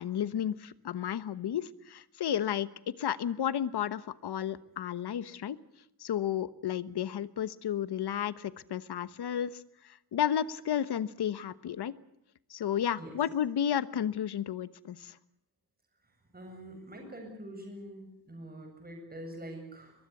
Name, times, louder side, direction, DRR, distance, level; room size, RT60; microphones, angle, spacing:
voice 1, 0.0-5.6 6.0-9.5 10.1-11.9 12.5-15.1, left 9 dB, 80° left, 16 dB, 1.2 m, -32 dB
voice 2, 16.3-19.9, right 1 dB, 25° right, 2 dB, 7.5 m, -45 dB
22.5 x 22.0 x 8.4 m, 0.78 s
wide cardioid pair, 155°, 39 cm